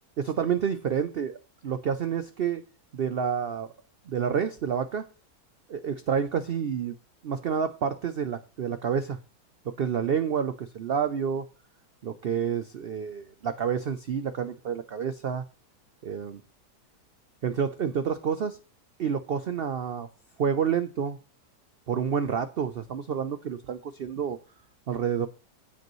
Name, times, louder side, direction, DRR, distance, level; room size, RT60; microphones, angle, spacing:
voice 1, 0.2-1.4 1.6-2.6 2.9-3.7 4.1-5.0 5.7-7.0 7.2-9.2 9.8-11.5 12.0-15.4 16.0-16.4 17.4-18.6 19.0-20.1 20.4-21.2 21.9-24.4 24.9-25.3, right 7 dB, 85° right, 10 dB, 0.5 m, -29 dB
15.0 x 5.2 x 3.1 m, 0.35 s
omnidirectional pair, 1.7 m